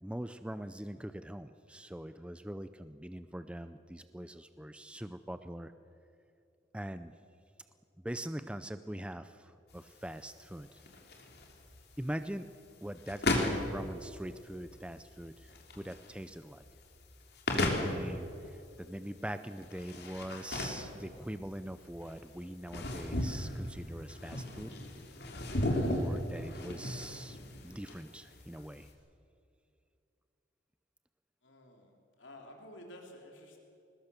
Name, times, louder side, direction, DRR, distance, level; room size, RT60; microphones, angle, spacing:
voice 1, 0.0-5.7 6.7-7.1 8.0-10.8 12.0-12.5 12.8-16.6 17.5-24.7 25.8-27.4 27.6-28.9, right 1 dB, 5° right, 11 dB, 0.5 m, -42 dB
sound 1, 9.7-28.9, left 1 dB, 55° left, 3.2 m, -37 dB
voice 2, 31.4-31.9 32.2-33.6, left 1 dB, 85° left, 1 dB, 3.3 m, -51 dB
22.0 x 20.5 x 6.9 m, 2.6 s
head